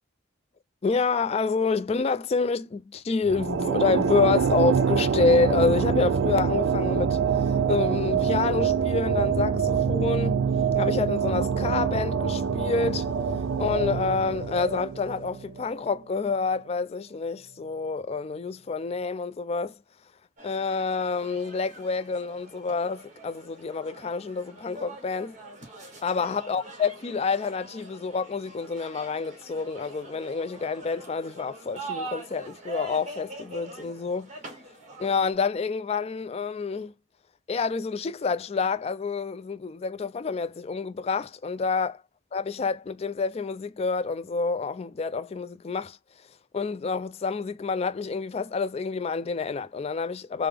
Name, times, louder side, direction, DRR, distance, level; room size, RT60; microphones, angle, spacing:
voice 1, 0.8-7.2 7.4-10.4 10.7-13.1 13.6-19.8 20.4-25.3 26.0-34.3 35.0-36.9 37.5-41.9 42.3-46.0 46.5-50.5, left 4 dB, 30° left, 0.3 m, -28 dB
sound 1, 3.2-15.8, right 6 dB, 75° right, 0.4 m, -25 dB
sound 2, 20.4-35.3, right 3 dB, 40° right, 1.5 m, -43 dB
3.3 x 2.0 x 3.4 m
head